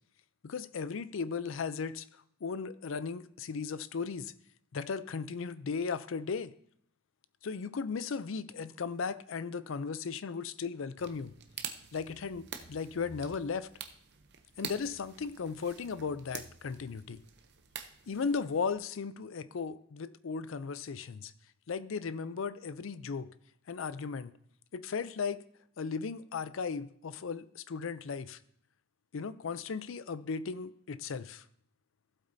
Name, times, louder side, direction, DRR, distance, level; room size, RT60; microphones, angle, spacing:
voice 1, 0.4-2.1 2.4-4.3 4.7-6.5 7.4-11.3 11.9-13.7 14.6-17.2 18.1-21.3 21.7-23.3 23.7-24.3 24.7-25.4 25.8-28.4 29.1-31.4, left 5 dB, 70° left, 15 dB, 0.5 m, -36 dB
sound 1, 11.0-18.7, right 7 dB, 55° right, 0.7 m, -47 dB
15.0 x 8.0 x 2.7 m, 0.67 s
head